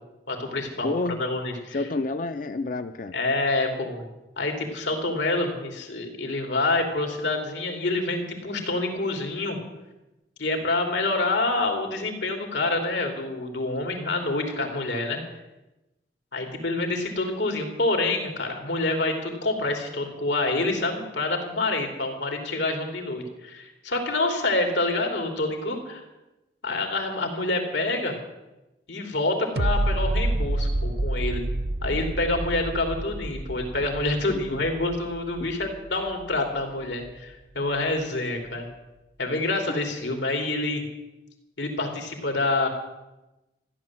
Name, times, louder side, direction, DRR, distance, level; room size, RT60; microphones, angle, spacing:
voice 1, 0.3-0.9 1.2-1.8 3.1-4.0 4.4-9.6 10.4-15.2 16.3-26.0 26.6-28.1 28.9-31.4 31.8-38.7 39.2-40.8 41.6-42.7, left 2 dB, 90° left, 3 dB, 3.3 m, -27 dB
voice 2, 0.8-1.2 1.7-3.1 34.3-34.6, left 2 dB, 45° left, 10 dB, 0.5 m, -29 dB
sound 1, 29.6-36.6 37.1-37.2, right 1 dB, 65° right, 0.7 m, -28 dB
15.0 x 11.0 x 7.6 m, 1.0 s
head